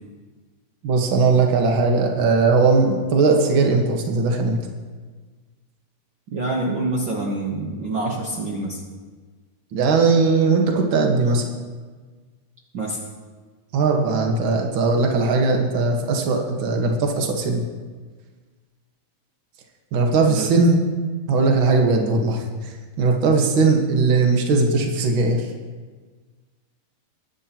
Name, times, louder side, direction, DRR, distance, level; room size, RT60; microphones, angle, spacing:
voice 1, 0.8-4.6 9.7-11.4 13.7-17.6 19.9-20.8 21.3-22.4 23.0-25.5, right 3 dB, 50° right, 1 dB, 1.6 m, -19 dB
voice 2, 6.3-8.8 12.7-13.0 20.3-20.6, right 2 dB, 80° right, -2 dB, 1.0 m, -26 dB
21.5 x 11.0 x 3.0 m, 1.4 s
omnidirectional pair, 3.9 m